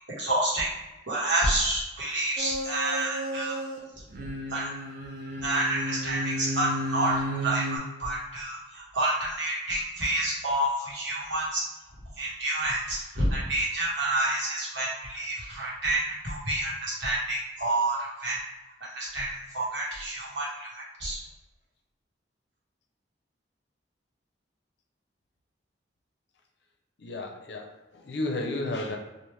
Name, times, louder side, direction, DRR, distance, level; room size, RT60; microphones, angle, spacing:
voice 1, 0.2-0.7 1.1-3.6 4.5-4.7 5.4-11.6 12.2-18.4 18.8-21.2, right 1 dB, 75° right, -5 dB, 1.2 m, -29 dB
sound 1, 2.4-3.8 4.1-7.8, equal, 55° right, 0.6 m, -33 dB
voice 2, 27.0-29.0, left 2 dB, 65° left, 3 dB, 0.5 m, -32 dB
3.4 x 2.4 x 3.1 m, 1.1 s
head